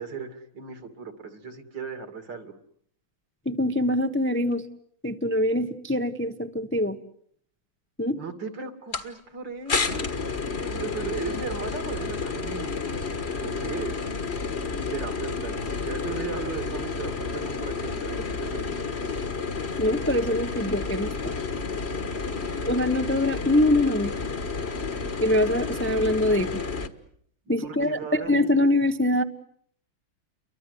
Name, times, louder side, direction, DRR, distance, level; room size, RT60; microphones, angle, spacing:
voice 1, 0.0-2.5 8.2-10.2 10.5-12.8 13.4-14.0 14.7-18.6 25.6-25.9 27.5-28.4, right 5 dB, 65° right, 8 dB, 3.3 m, -37 dB
voice 2, 3.4-4.6 5.0-7.0 8.0-8.2 19.8-21.3 22.6-24.1 25.2-26.5 27.5-29.2, left 1 dB, 10° left, 7 dB, 0.8 m, -24 dB
sound 1, 8.9-9.1 9.7-26.9, left 4 dB, 35° left, 1.6 m, -31 dB
30.0 x 23.5 x 8.1 m, 0.65 s
omnidirectional pair, 2.2 m